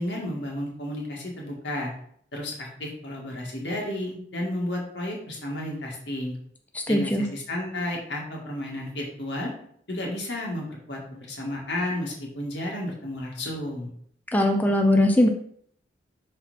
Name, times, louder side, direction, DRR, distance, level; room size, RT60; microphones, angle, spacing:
voice 1, 0.0-1.9 2.3-6.3 6.9-9.5 9.9-13.9, left 1 dB, 85° left, -1 dB, 1.8 m, -32 dB
voice 2, 6.7-7.3 14.3-15.3, left 1 dB, 10° left, 3 dB, 0.4 m, -20 dB
5.7 x 4.3 x 4.1 m, 0.64 s
head